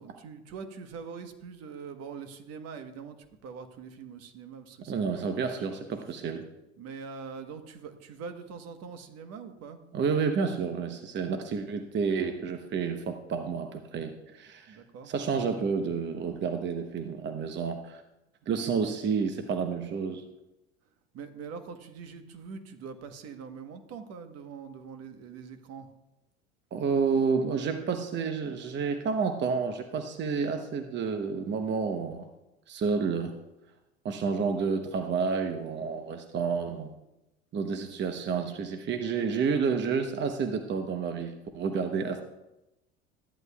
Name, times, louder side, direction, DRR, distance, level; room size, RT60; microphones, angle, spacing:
voice 1, 0.0-3.2 3.4-5.4 5.6-5.7 6.8-9.8 14.7-15.1 21.1-25.9, right 5 dB, 50° right, 8 dB, 1.2 m, -43 dB
voice 2, 4.9-6.4 9.9-14.8 15.1-18.0 18.5-20.2 26.7-32.2 32.7-33.4 34.0-36.9 37.5-42.2, right 5 dB, 35° right, 6 dB, 0.9 m, -30 dB
14.0 x 10.5 x 2.3 m, 0.95 s
hypercardioid pair, 80°, 32 cm